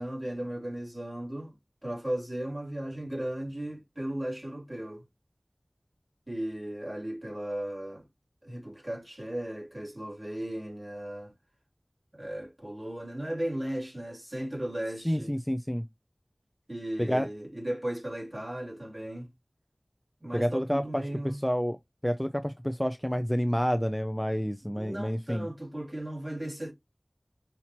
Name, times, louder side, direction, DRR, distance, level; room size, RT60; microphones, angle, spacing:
voice 1, 0.0-1.5 1.8-5.0 6.3-8.1 8.4-11.3 12.1-15.4 16.7-19.3 20.2-21.4 24.6-26.7, right 1 dB, 25° right, 2.8 m, -36 dB
voice 2, 15.0-15.9 17.0-17.3 20.3-21.0 21.4-21.8 22.0-25.5, equal, 10° left, 0.4 m, -29 dB
5.7 x 2.8 x 2.9 m
wide cardioid pair, 50°, 0 cm